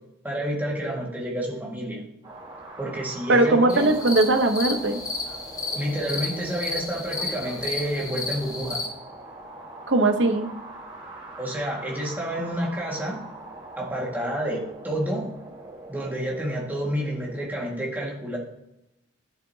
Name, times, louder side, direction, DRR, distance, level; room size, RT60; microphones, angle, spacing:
voice 1, 0.2-2.0 2.8-3.8 5.8-8.8 11.4-13.2 13.8-15.3 15.9-18.4, right 1 dB, 10° right, -3 dB, 1.9 m, -29 dB
sound 1, 2.2-17.5, right 2 dB, 25° right, 2.5 m, -43 dB
voice 2, 3.3-5.0 9.9-10.5, right 2 dB, 75° right, 7 dB, 0.9 m, -20 dB
sound 2, 3.7-8.9, left 3 dB, 20° left, 1.0 m, -32 dB
10.0 x 7.4 x 2.8 m, 0.87 s
head